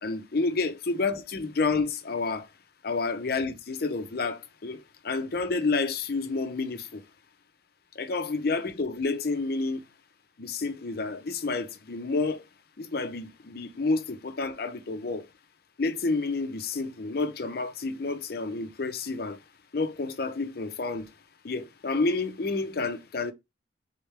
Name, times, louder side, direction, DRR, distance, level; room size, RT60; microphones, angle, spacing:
voice 1, 0.0-2.5 2.8-7.0 8.0-9.8 10.4-12.4 12.8-15.3 15.8-19.4 19.7-21.1 21.4-23.3, left 3 dB, 55° left, 0.6 m, -29 dB
3.7 x 3.3 x 3.2 m
head